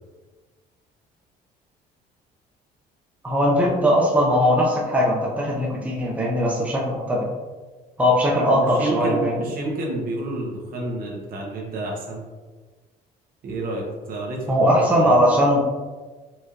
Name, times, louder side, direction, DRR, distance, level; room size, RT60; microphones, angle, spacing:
voice 1, 3.2-7.3 8.0-9.5 14.5-15.6, equal, 10° right, -4 dB, 0.7 m, -20 dB
voice 2, 8.5-12.2 13.4-15.2, right 1 dB, 60° right, -2 dB, 1.1 m, -29 dB
4.3 x 3.0 x 2.5 m, 1.3 s
cardioid pair, 110°, 17 cm